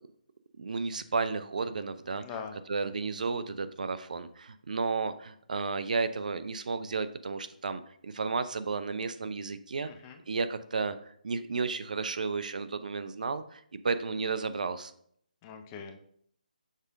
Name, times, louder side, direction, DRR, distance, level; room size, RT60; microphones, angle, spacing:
voice 1, 0.6-2.2 2.7-9.9 10.3-14.9, right 4 dB, 60° right, 12 dB, 0.5 m, -33 dB
voice 2, 2.2-2.6 9.9-10.2 15.4-16.0, left 6 dB, 20° left, 6 dB, 0.6 m, -42 dB
6.5 x 5.0 x 3.6 m, 0.65 s
figure-of-eight pair, 150°, 5 cm